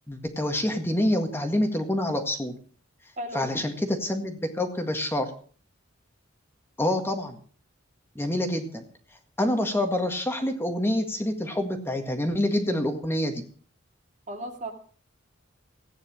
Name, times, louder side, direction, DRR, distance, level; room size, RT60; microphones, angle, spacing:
voice 1, 0.1-2.5 3.3-5.3 6.8-7.4 8.2-8.8 9.4-13.4, left 1 dB, 10° left, 5 dB, 1.8 m, -27 dB
voice 2, 3.2-3.6 14.3-14.7, right 1 dB, 40° right, 4 dB, 2.4 m, -35 dB
15.5 x 9.6 x 6.4 m, 0.43 s
head